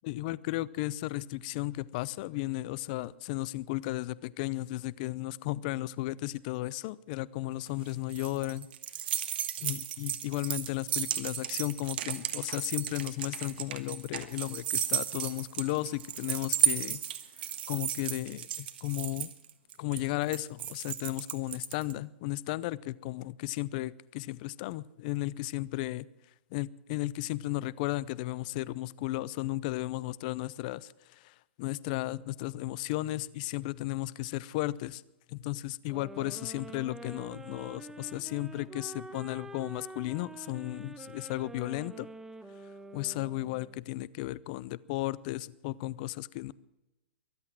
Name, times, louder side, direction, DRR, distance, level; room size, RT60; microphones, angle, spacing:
voice 1, 0.0-8.7 9.6-17.0 17.4-19.3 19.8-26.1 26.5-35.0 35.3-42.1 42.9-46.5, left 17 dB, 45° left, 20 dB, 0.6 m, -34 dB
sound 1, 7.7-21.9, right 11 dB, 60° right, 1.5 m, -34 dB
sound 2, 35.9-43.9, right 2 dB, 5° right, 0.8 m, -47 dB
23.0 x 8.3 x 7.6 m, 0.96 s
hypercardioid pair, 140°, 6 cm